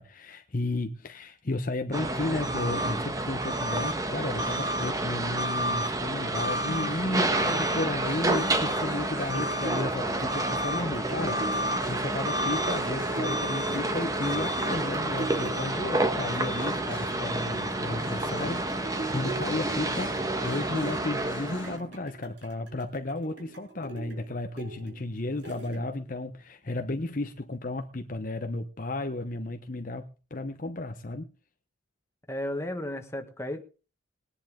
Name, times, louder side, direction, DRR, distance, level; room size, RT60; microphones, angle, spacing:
voice 1, 0.0-31.3, left 2 dB, 45° left, 0.9 m, -33 dB
sound 1, 1.9-21.8, right 1 dB, 15° right, 1.2 m, -29 dB
sound 2, 6.3-21.8, left 3 dB, 70° left, 1.6 m, -44 dB
sound 3, 9.0-26.2 26.7-26.8, right 3 dB, 65° right, 5.4 m, -42 dB
voice 2, 32.3-33.6, left 1 dB, 15° left, 1.6 m, -33 dB
20.0 x 10.5 x 3.7 m
head